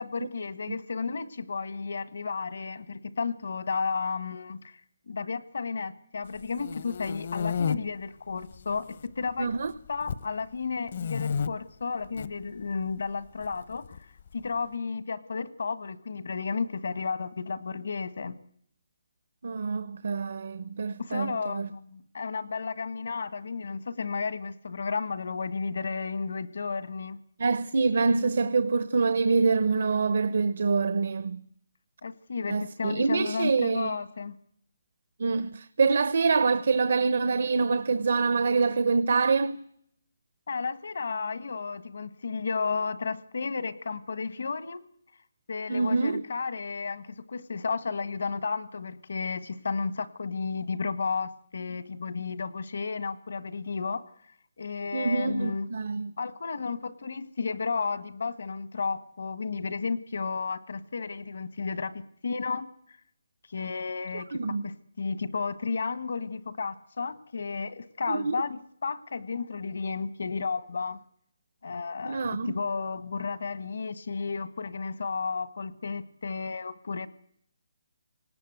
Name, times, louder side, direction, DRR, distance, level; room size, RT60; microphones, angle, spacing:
voice 1, 0.0-4.8 5.1-9.6 9.9-14.0 14.3-18.3 21.0-27.2 32.0-34.3 40.5-44.8 45.5-54.0 54.6-55.7 56.2-62.7 63.5-71.0 71.6-77.1, left 5 dB, 70° left, 1.6 m, -33 dB
sound 1, 6.4-7.8 8.4-9.0 9.3-10.3 10.9-11.5 12.0-12.3 13.4-14.3, left 7 dB, 50° left, 0.9 m, -31 dB
voice 2, 9.4-9.7 19.4-21.7 27.4-31.4 32.5-34.0 35.2-39.6 45.7-46.2 54.9-56.1 64.1-64.7 68.1-68.3 72.0-72.6, right 4 dB, 65° right, 0.9 m, -26 dB
27.0 x 18.5 x 8.1 m
hypercardioid pair, 160°, 0 cm